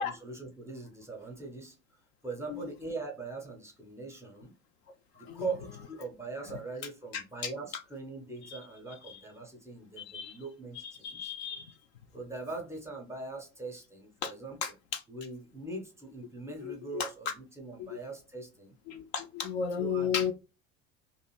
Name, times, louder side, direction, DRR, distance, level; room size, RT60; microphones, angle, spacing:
voice 1, 0.0-4.5 5.1-11.3 12.1-14.7 15.1-18.8 19.8-20.3, right 3 dB, 5° right, 0.6 m, -41 dB
voice 2, 10.0-10.4 10.8-11.7 14.2-14.3 14.6-15.0 16.9-17.1 18.9-20.3, left 7 dB, 50° left, 0.4 m, -33 dB
2.6 x 2.4 x 3.0 m
figure-of-eight pair, 75°, 42 cm